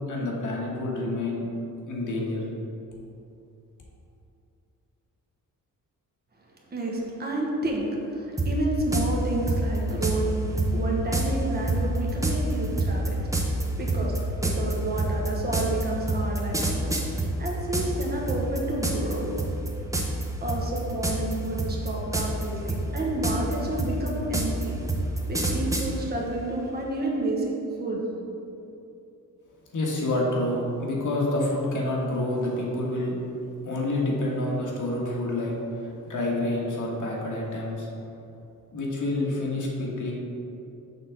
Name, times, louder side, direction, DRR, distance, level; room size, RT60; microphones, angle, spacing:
voice 1, 0.1-1.4 1.9-2.4 29.7-33.1 33.6-37.9 38.7-40.1, left 1 dB, 65° left, -3 dB, 1.5 m, -28 dB
voice 2, 6.7-14.1 14.4-19.3 20.4-24.7 25.3-27.5 27.8-28.0, right 1 dB, 30° right, -3 dB, 1.1 m, -30 dB
sound 1, 8.4-8.5 8.9-9.1 9.5-10.2 10.6-10.7 11.1-11.3 11.7-18.0 18.3-19.1 19.4-19.7 19.9-20.2 20.5-21.3 21.6-22.4 22.7-25.9, right 3 dB, 10° right, 0.7 m, -26 dB
6.4 x 3.7 x 5.8 m, 2.8 s
wide cardioid pair, 130°, 33 cm